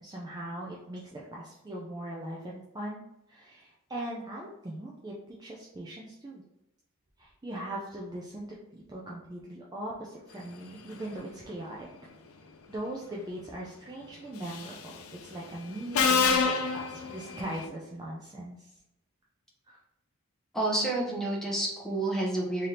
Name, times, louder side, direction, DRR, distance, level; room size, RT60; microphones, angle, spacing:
voice 1, 0.0-3.0 3.3-6.4 7.2-11.9 12.7-18.8 19.6-19.8, right 1 dB, 20° right, -4 dB, 0.4 m, -40 dB
Subway metro underground, 14.5-14.8 15.9-17.6, left 5 dB, 70° left, 0.5 m, -26 dB
voice 2, 20.5-22.7, right 2 dB, ahead, -3 dB, 0.8 m, -29 dB
3.3 x 2.8 x 3.8 m, 0.90 s
head